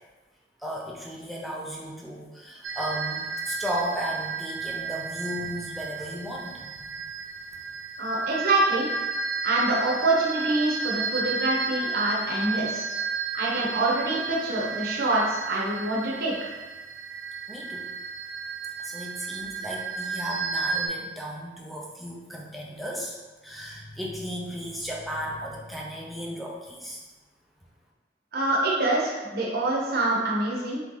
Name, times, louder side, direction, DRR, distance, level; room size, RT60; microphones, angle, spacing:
voice 1, 0.6-6.9 17.5-17.9 18.8-23.2 23.4-27.0, equal, ahead, -3 dB, 0.6 m, -35 dB
sound 1, 2.6-20.9, right 4 dB, 85° right, 0.5 m, -33 dB
voice 2, 8.0-8.9 9.4-12.9 13.3-16.5 28.3-30.8, right 2 dB, 60° right, -4 dB, 0.9 m, -25 dB
3.4 x 3.1 x 3.8 m, 1.2 s
head